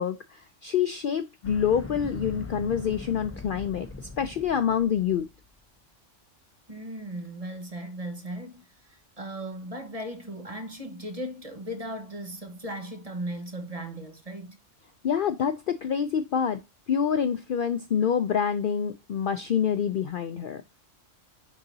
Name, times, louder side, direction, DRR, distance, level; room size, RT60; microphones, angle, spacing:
voice 1, 0.0-3.9 4.2-5.3 15.0-16.6 16.9-20.6, left 8 dB, 60° left, 0.6 m, -26 dB
sound 1, 1.4-5.4, left 3 dB, 15° left, 0.5 m, -41 dB
voice 2, 6.7-14.6, right 1 dB, 30° right, 1.3 m, -37 dB
9.8 x 3.8 x 2.7 m
omnidirectional pair, 1.3 m